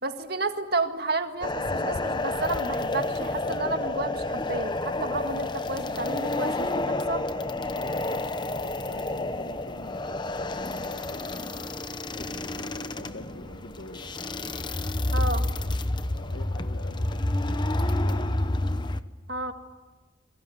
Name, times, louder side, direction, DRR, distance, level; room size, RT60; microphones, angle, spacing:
voice 1, 0.0-7.3 15.1-15.4 19.3-19.5, right 3 dB, 55° right, 6 dB, 2.0 m, -31 dB
sound 1, 1.4-19.0, left 2 dB, 25° left, 0.9 m, -29 dB
Piano, 3.5-17.9, left 1 dB, 50° left, 2.7 m, -50 dB
voice 2, 8.0-8.3 8.6-11.3 12.1-14.1 15.2-15.4 16.3-18.3, left 1 dB, 75° left, 6 dB, 1.9 m, -45 dB
28.0 x 22.5 x 9.3 m, 1.3 s
head